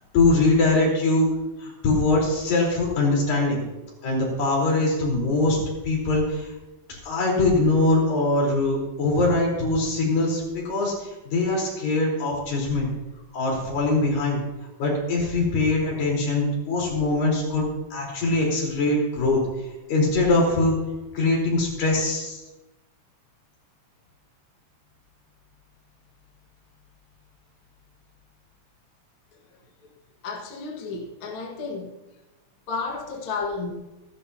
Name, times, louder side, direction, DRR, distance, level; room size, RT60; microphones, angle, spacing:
voice 1, 0.1-1.3 1.6-3.6 4.0-5.6 5.8-6.5 6.9-12.9 13.3-14.4 14.8-17.6 17.9-19.4 19.9-20.7 21.1-22.4, left 2 dB, 70° left, -2 dB, 5.8 m, -22 dB
voice 2, 30.2-32.0 32.7-33.7, left 4 dB, 45° left, 0 dB, 2.0 m, -32 dB
26.0 x 11.0 x 2.8 m, 1.0 s
omnidirectional pair, 4.2 m